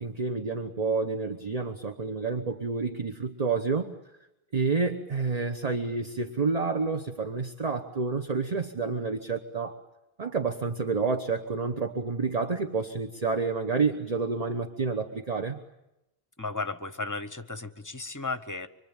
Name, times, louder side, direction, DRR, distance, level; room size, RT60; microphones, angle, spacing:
voice 1, 0.0-3.9 4.5-9.8 10.2-15.6, right 4 dB, 40° right, 6 dB, 1.2 m, -29 dB
voice 2, 16.4-18.7, left 3 dB, 20° left, 11 dB, 1.0 m, -34 dB
25.0 x 24.5 x 8.9 m, 0.91 s
omnidirectional pair, 1.0 m